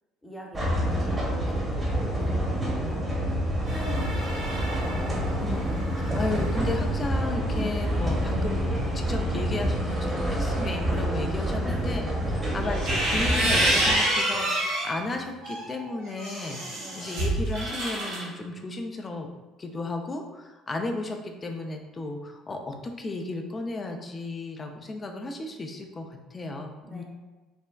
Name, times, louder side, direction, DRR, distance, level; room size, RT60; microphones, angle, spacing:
voice 1, 0.2-4.3 5.3-5.9 11.6-12.4 16.7-17.1 26.8-27.0, equal, 10° left, -2 dB, 0.8 m, -43 dB
sound 1, 0.5-13.9, equal, 25° right, 0.9 m, -27 dB
sound 2, 3.6-12.7, right 1 dB, 55° right, 1.4 m, -41 dB
voice 2, 4.7-5.0 5.4-19.3 19.6-27.0, left 2 dB, 30° left, 3 dB, 0.4 m, -34 dB
sound 3, 12.6-14.9 15.4-18.2, right 1 dB, 70° right, 0.9 m, -26 dB
3.4 x 2.1 x 2.3 m, 1.2 s
hypercardioid pair, 60°, 0 cm